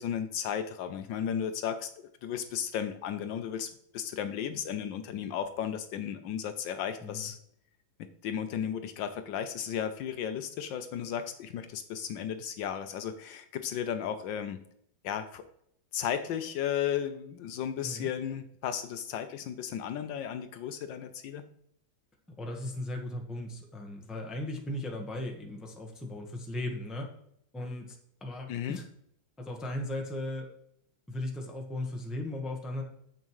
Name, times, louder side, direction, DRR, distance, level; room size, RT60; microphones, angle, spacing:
voice 1, 0.0-1.9 2.2-7.4 8.0-14.6 15.0-15.4 15.9-21.4 28.5-28.8, left 9 dB, 75° left, 9 dB, 1.2 m, -34 dB
voice 2, 22.3-27.1 27.5-28.9 29.4-30.5 31.1-32.8, left 1 dB, ahead, 1 dB, 0.8 m, -37 dB
8.9 x 7.6 x 3.1 m, 0.71 s
omnidirectional pair, 2.2 m